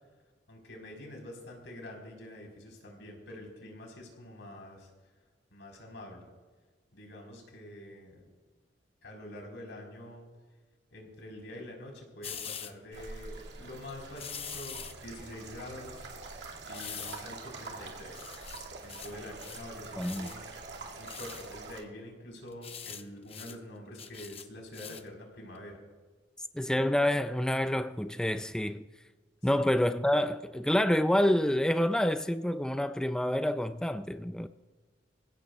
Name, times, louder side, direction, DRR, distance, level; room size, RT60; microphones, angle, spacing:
voice 1, 0.5-4.9 5.5-6.2 6.9-8.2 9.0-10.3 10.9-16.1 16.6-18.3 18.8-20.4 21.0-25.8 29.5-29.7, left 1 dB, 80° left, 4.2 m, -46 dB
sound 1, 12.2-12.7 14.2-14.9 16.7-17.3 17.7-17.8 18.1-19.1 19.4-19.7 20.0-20.3 21.1-21.5 22.5-23.0 23.3-23.5 23.9-25.1 25.5-25.6, left 7 dB, 30° left, 0.8 m, -43 dB
sound 2, 12.9-21.8, right 3 dB, 70° right, 2.2 m, -45 dB
voice 2, 20.0-20.3 26.5-28.8 29.4-34.5, left 1 dB, 5° left, 0.3 m, -28 dB
26.0 x 16.0 x 2.3 m
head